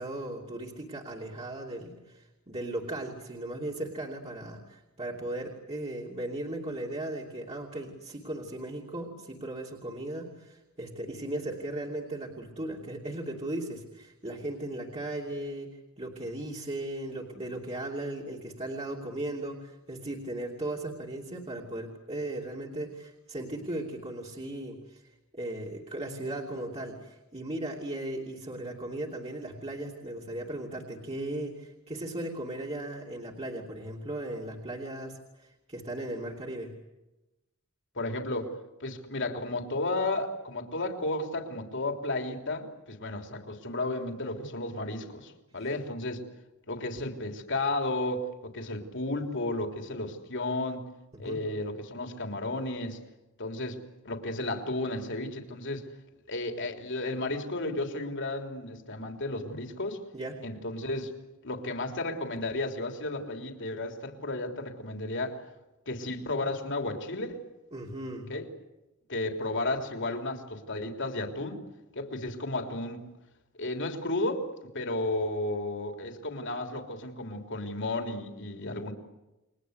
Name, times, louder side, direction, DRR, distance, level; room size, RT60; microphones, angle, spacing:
voice 1, 0.0-36.7 51.1-51.4 60.1-60.4 67.7-68.3, right 1 dB, 30° right, -2 dB, 2.9 m, -37 dB
voice 2, 38.0-38.5 38.8-46.3 46.7-50.8 51.2-53.0 53.4-53.8 54.0-55.9 56.3-60.0 60.4-61.1 61.4-65.4 65.9-67.4 68.3-68.5 69.1-71.6 72.0-73.0 73.6-74.5 74.7-78.9, left 2 dB, 55° left, 4 dB, 3.5 m, -33 dB
29.5 x 23.5 x 8.3 m, 1.0 s
head